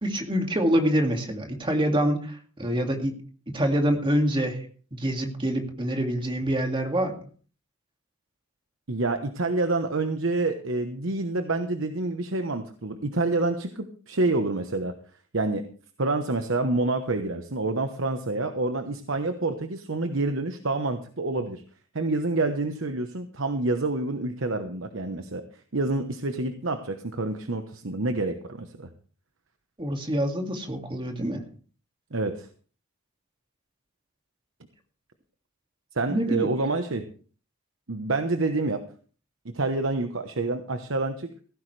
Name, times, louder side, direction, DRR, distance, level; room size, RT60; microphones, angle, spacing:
voice 1, 0.0-3.2 3.5-4.6 4.9-7.2 29.8-31.4 36.1-36.5, equal, 25° right, 3 dB, 2.2 m, -26 dB
voice 2, 8.9-14.9 15.3-15.7 16.0-21.6 21.9-25.4 25.7-28.9 32.1-32.5 35.9-37.0 37.9-38.8 39.4-41.3, right 2 dB, 65° right, 7 dB, 1.1 m, -27 dB
16.5 x 14.0 x 3.3 m, 0.41 s
head